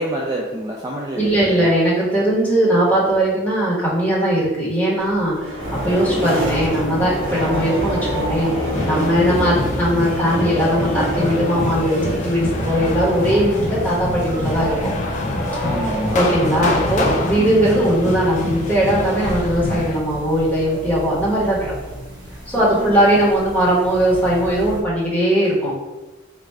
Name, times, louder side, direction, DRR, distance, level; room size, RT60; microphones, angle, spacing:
voice 1, 0.0-1.7 9.3-9.6 15.6-16.3 17.4-17.7 22.6-23.3, right 1 dB, 20° right, -2 dB, 0.3 m, -28 dB
voice 2, 1.2-14.9 16.1-21.7 22.5-25.7, right 1 dB, 10° left, -7 dB, 1.1 m, -19 dB
sound 1, 5.0-19.9, equal, 75° right, 1.1 m, -29 dB
sound 2, 5.6-24.8, equal, 55° right, 1.3 m, -31 dB
sound 3, 8.7-20.0, left 2 dB, 40° left, 0.5 m, -25 dB
4.5 x 2.4 x 3.2 m, 1.1 s
head